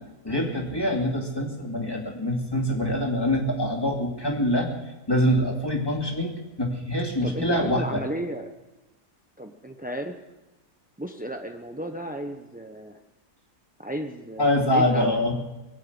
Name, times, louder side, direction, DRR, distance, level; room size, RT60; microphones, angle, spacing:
voice 1, 0.2-4.7 5.1-8.0 14.4-15.3, left 1 dB, 15° left, -1 dB, 2.5 m, -25 dB
voice 2, 7.2-8.5 9.4-10.1 11.0-13.0 13.8-15.3, right 1 dB, 10° right, 4 dB, 0.4 m, -34 dB
22.5 x 8.0 x 8.0 m, 1.1 s
omnidirectional pair, 1.7 m